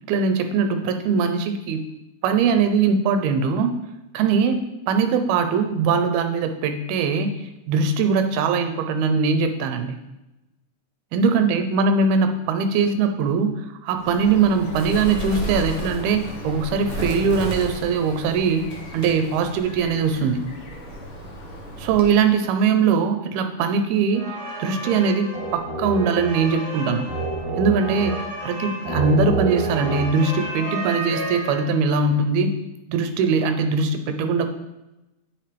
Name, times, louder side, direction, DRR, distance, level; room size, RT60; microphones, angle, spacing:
voice 1, 0.1-1.8 2.2-3.8 4.1-7.3 7.7-10.0 11.1-20.4 21.8-24.2 24.6-27.1 27.6-32.5 32.9-34.5, right 5 dB, 80° right, 7 dB, 2.6 m, -21 dB
Bird, 14.0-22.2, equal, 65° left, 1.3 m, -33 dB
sound 1, 24.1-32.0, right 2 dB, 50° right, 2.0 m, -29 dB
8.9 x 7.4 x 3.4 m, 0.95 s
omnidirectional pair, 4.5 m